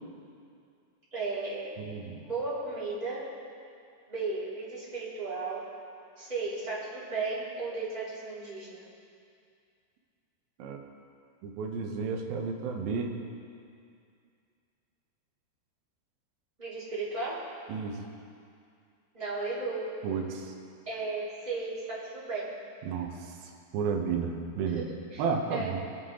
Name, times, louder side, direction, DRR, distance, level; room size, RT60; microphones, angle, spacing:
voice 1, 1.1-1.7 2.2-3.3 4.1-5.7 6.2-8.8 16.6-17.5 19.1-20.0 20.9-22.5 24.7-25.2 25.5-25.8, right 3 dB, 10° right, -10 dB, 3.2 m, -35 dB
voice 2, 1.8-2.2 10.6-10.8 11.4-13.1 17.7-18.0 20.0-20.5 22.8-23.4 23.7-24.8 25.2-25.8, right 5 dB, 75° right, 2 dB, 2.7 m, -32 dB
23.5 x 8.3 x 3.8 m, 2.4 s
omnidirectional pair, 4.6 m